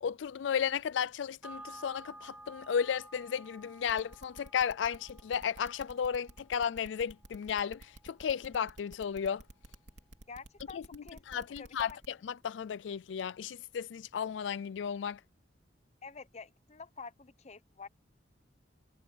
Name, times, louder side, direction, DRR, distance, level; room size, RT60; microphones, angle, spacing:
voice 1, 0.0-9.4 10.7-10.8 11.3-11.9 12.2-15.2, left 7 dB, 80° left, 0.4 m, -34 dB
sound 1, 1.4-10.2 10.5-10.6, right 1 dB, 5° right, 3.9 m, -54 dB
sound 2, 3.9-12.1, right 1 dB, 75° right, 3.1 m, -52 dB
voice 2, 10.3-12.0 16.0-17.9, left 5 dB, 40° left, 0.8 m, -48 dB
head